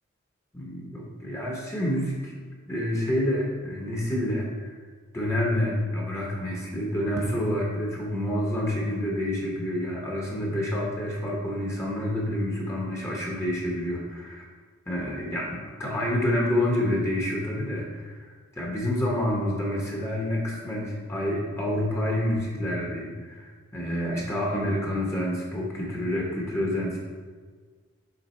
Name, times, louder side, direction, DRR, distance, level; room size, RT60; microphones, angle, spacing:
voice 1, 0.5-2.4 2.7-4.7 5.1-14.5 14.9-27.0, left 1 dB, 15° left, -3 dB, 0.9 m, -28 dB
6.7 x 3.9 x 4.3 m, 1.5 s
head